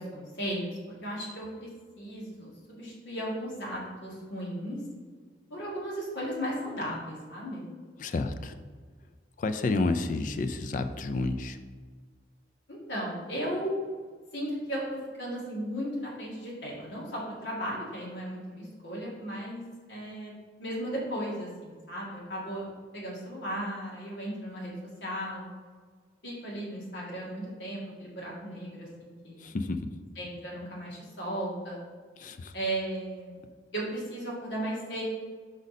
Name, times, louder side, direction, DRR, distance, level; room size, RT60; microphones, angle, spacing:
voice 1, 0.0-1.7 2.0-4.8 5.5-7.7 12.7-13.7 14.3-19.6 19.9-20.3 20.6-22.7 22.9-24.7 25.0-25.4 26.2-29.5 30.2-31.8 32.5-33.4 33.7-35.0, right 1 dB, 75° left, -4 dB, 1.9 m, -36 dB
voice 2, 8.0-8.6 9.4-11.6 29.4-30.0 32.2-32.5, left 3 dB, 45° left, 9 dB, 0.3 m, -30 dB
5.2 x 5.1 x 4.1 m, 1.5 s
head